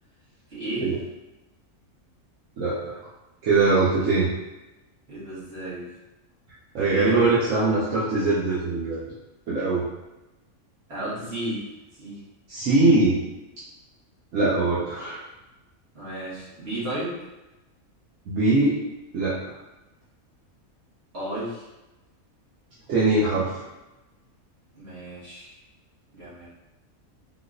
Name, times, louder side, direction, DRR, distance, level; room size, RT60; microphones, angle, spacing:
voice 1, 0.5-0.9 4.0-4.2 5.1-5.9 6.8-7.3 10.9-11.6 12.0-12.2 15.9-17.2 21.1-21.6 24.7-25.5 26.1-26.5, right 1 dB, 50° right, -11 dB, 1.8 m, -33 dB
voice 2, 2.6-3.0 3.4-4.3 6.7-9.1 9.5-9.8 12.5-13.2 14.3-15.2 18.3-18.8 19.1-19.5 22.9-23.6, right 3 dB, 75° right, -8 dB, 1.1 m, -22 dB
3.8 x 2.4 x 2.4 m, 1.0 s
omnidirectional pair, 1.4 m